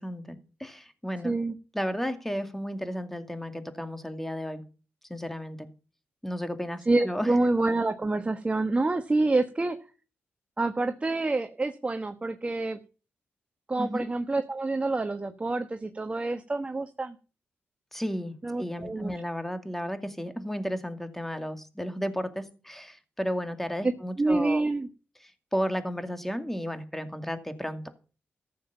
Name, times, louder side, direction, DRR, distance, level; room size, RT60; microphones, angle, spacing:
voice 1, 0.0-1.4 1.7-4.6 5.1-5.7 6.2-7.3 13.8-14.1 17.9-24.6 25.2-27.9, equal, 5° left, 8 dB, 2.3 m, -33 dB
voice 2, 6.9-9.8 10.6-12.8 13.7-17.1 18.4-19.1 24.2-24.9, right 2 dB, 25° right, 8 dB, 1.3 m, -27 dB
14.5 x 7.3 x 7.0 m, 0.36 s
cardioid pair, 65°, 5 cm